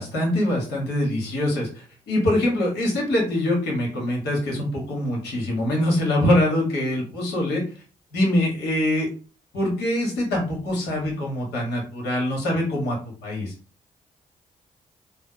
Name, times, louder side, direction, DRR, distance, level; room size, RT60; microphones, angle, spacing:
voice 1, 0.0-7.6 8.1-9.1 9.5-13.0 13.2-13.5, left 1 dB, 85° left, -2 dB, 1.2 m, -24 dB
3.4 x 2.0 x 3.7 m, 0.37 s
hypercardioid pair, 40°, 17 cm